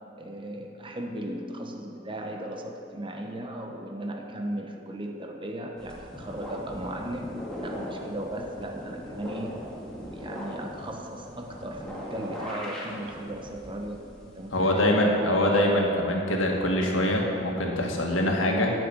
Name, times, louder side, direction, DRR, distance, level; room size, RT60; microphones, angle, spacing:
voice 1, 0.2-7.4 7.6-9.6 10.1-16.1, right 1 dB, 25° right, 2 dB, 1.0 m, -36 dB
sound 1, 5.8-14.6, equal, 5° left, 2.2 m, -39 dB
voice 2, 14.5-18.7, left 1 dB, 85° left, 0 dB, 1.8 m, -24 dB
10.5 x 6.2 x 8.8 m, 2.7 s
head